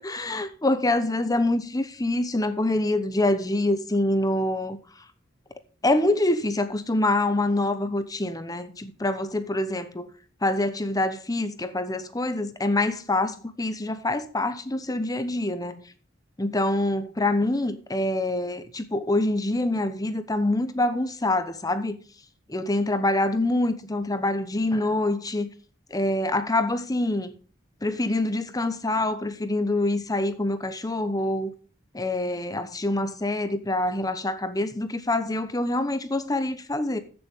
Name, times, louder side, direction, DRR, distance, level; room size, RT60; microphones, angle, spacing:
voice 1, 0.0-4.8 5.8-10.1 10.4-15.8 16.4-22.0 22.5-25.5 25.9-27.3 27.8-31.5 31.9-37.0, left 2 dB, 20° left, 0.9 m, -25 dB
15.0 x 7.1 x 3.6 m
head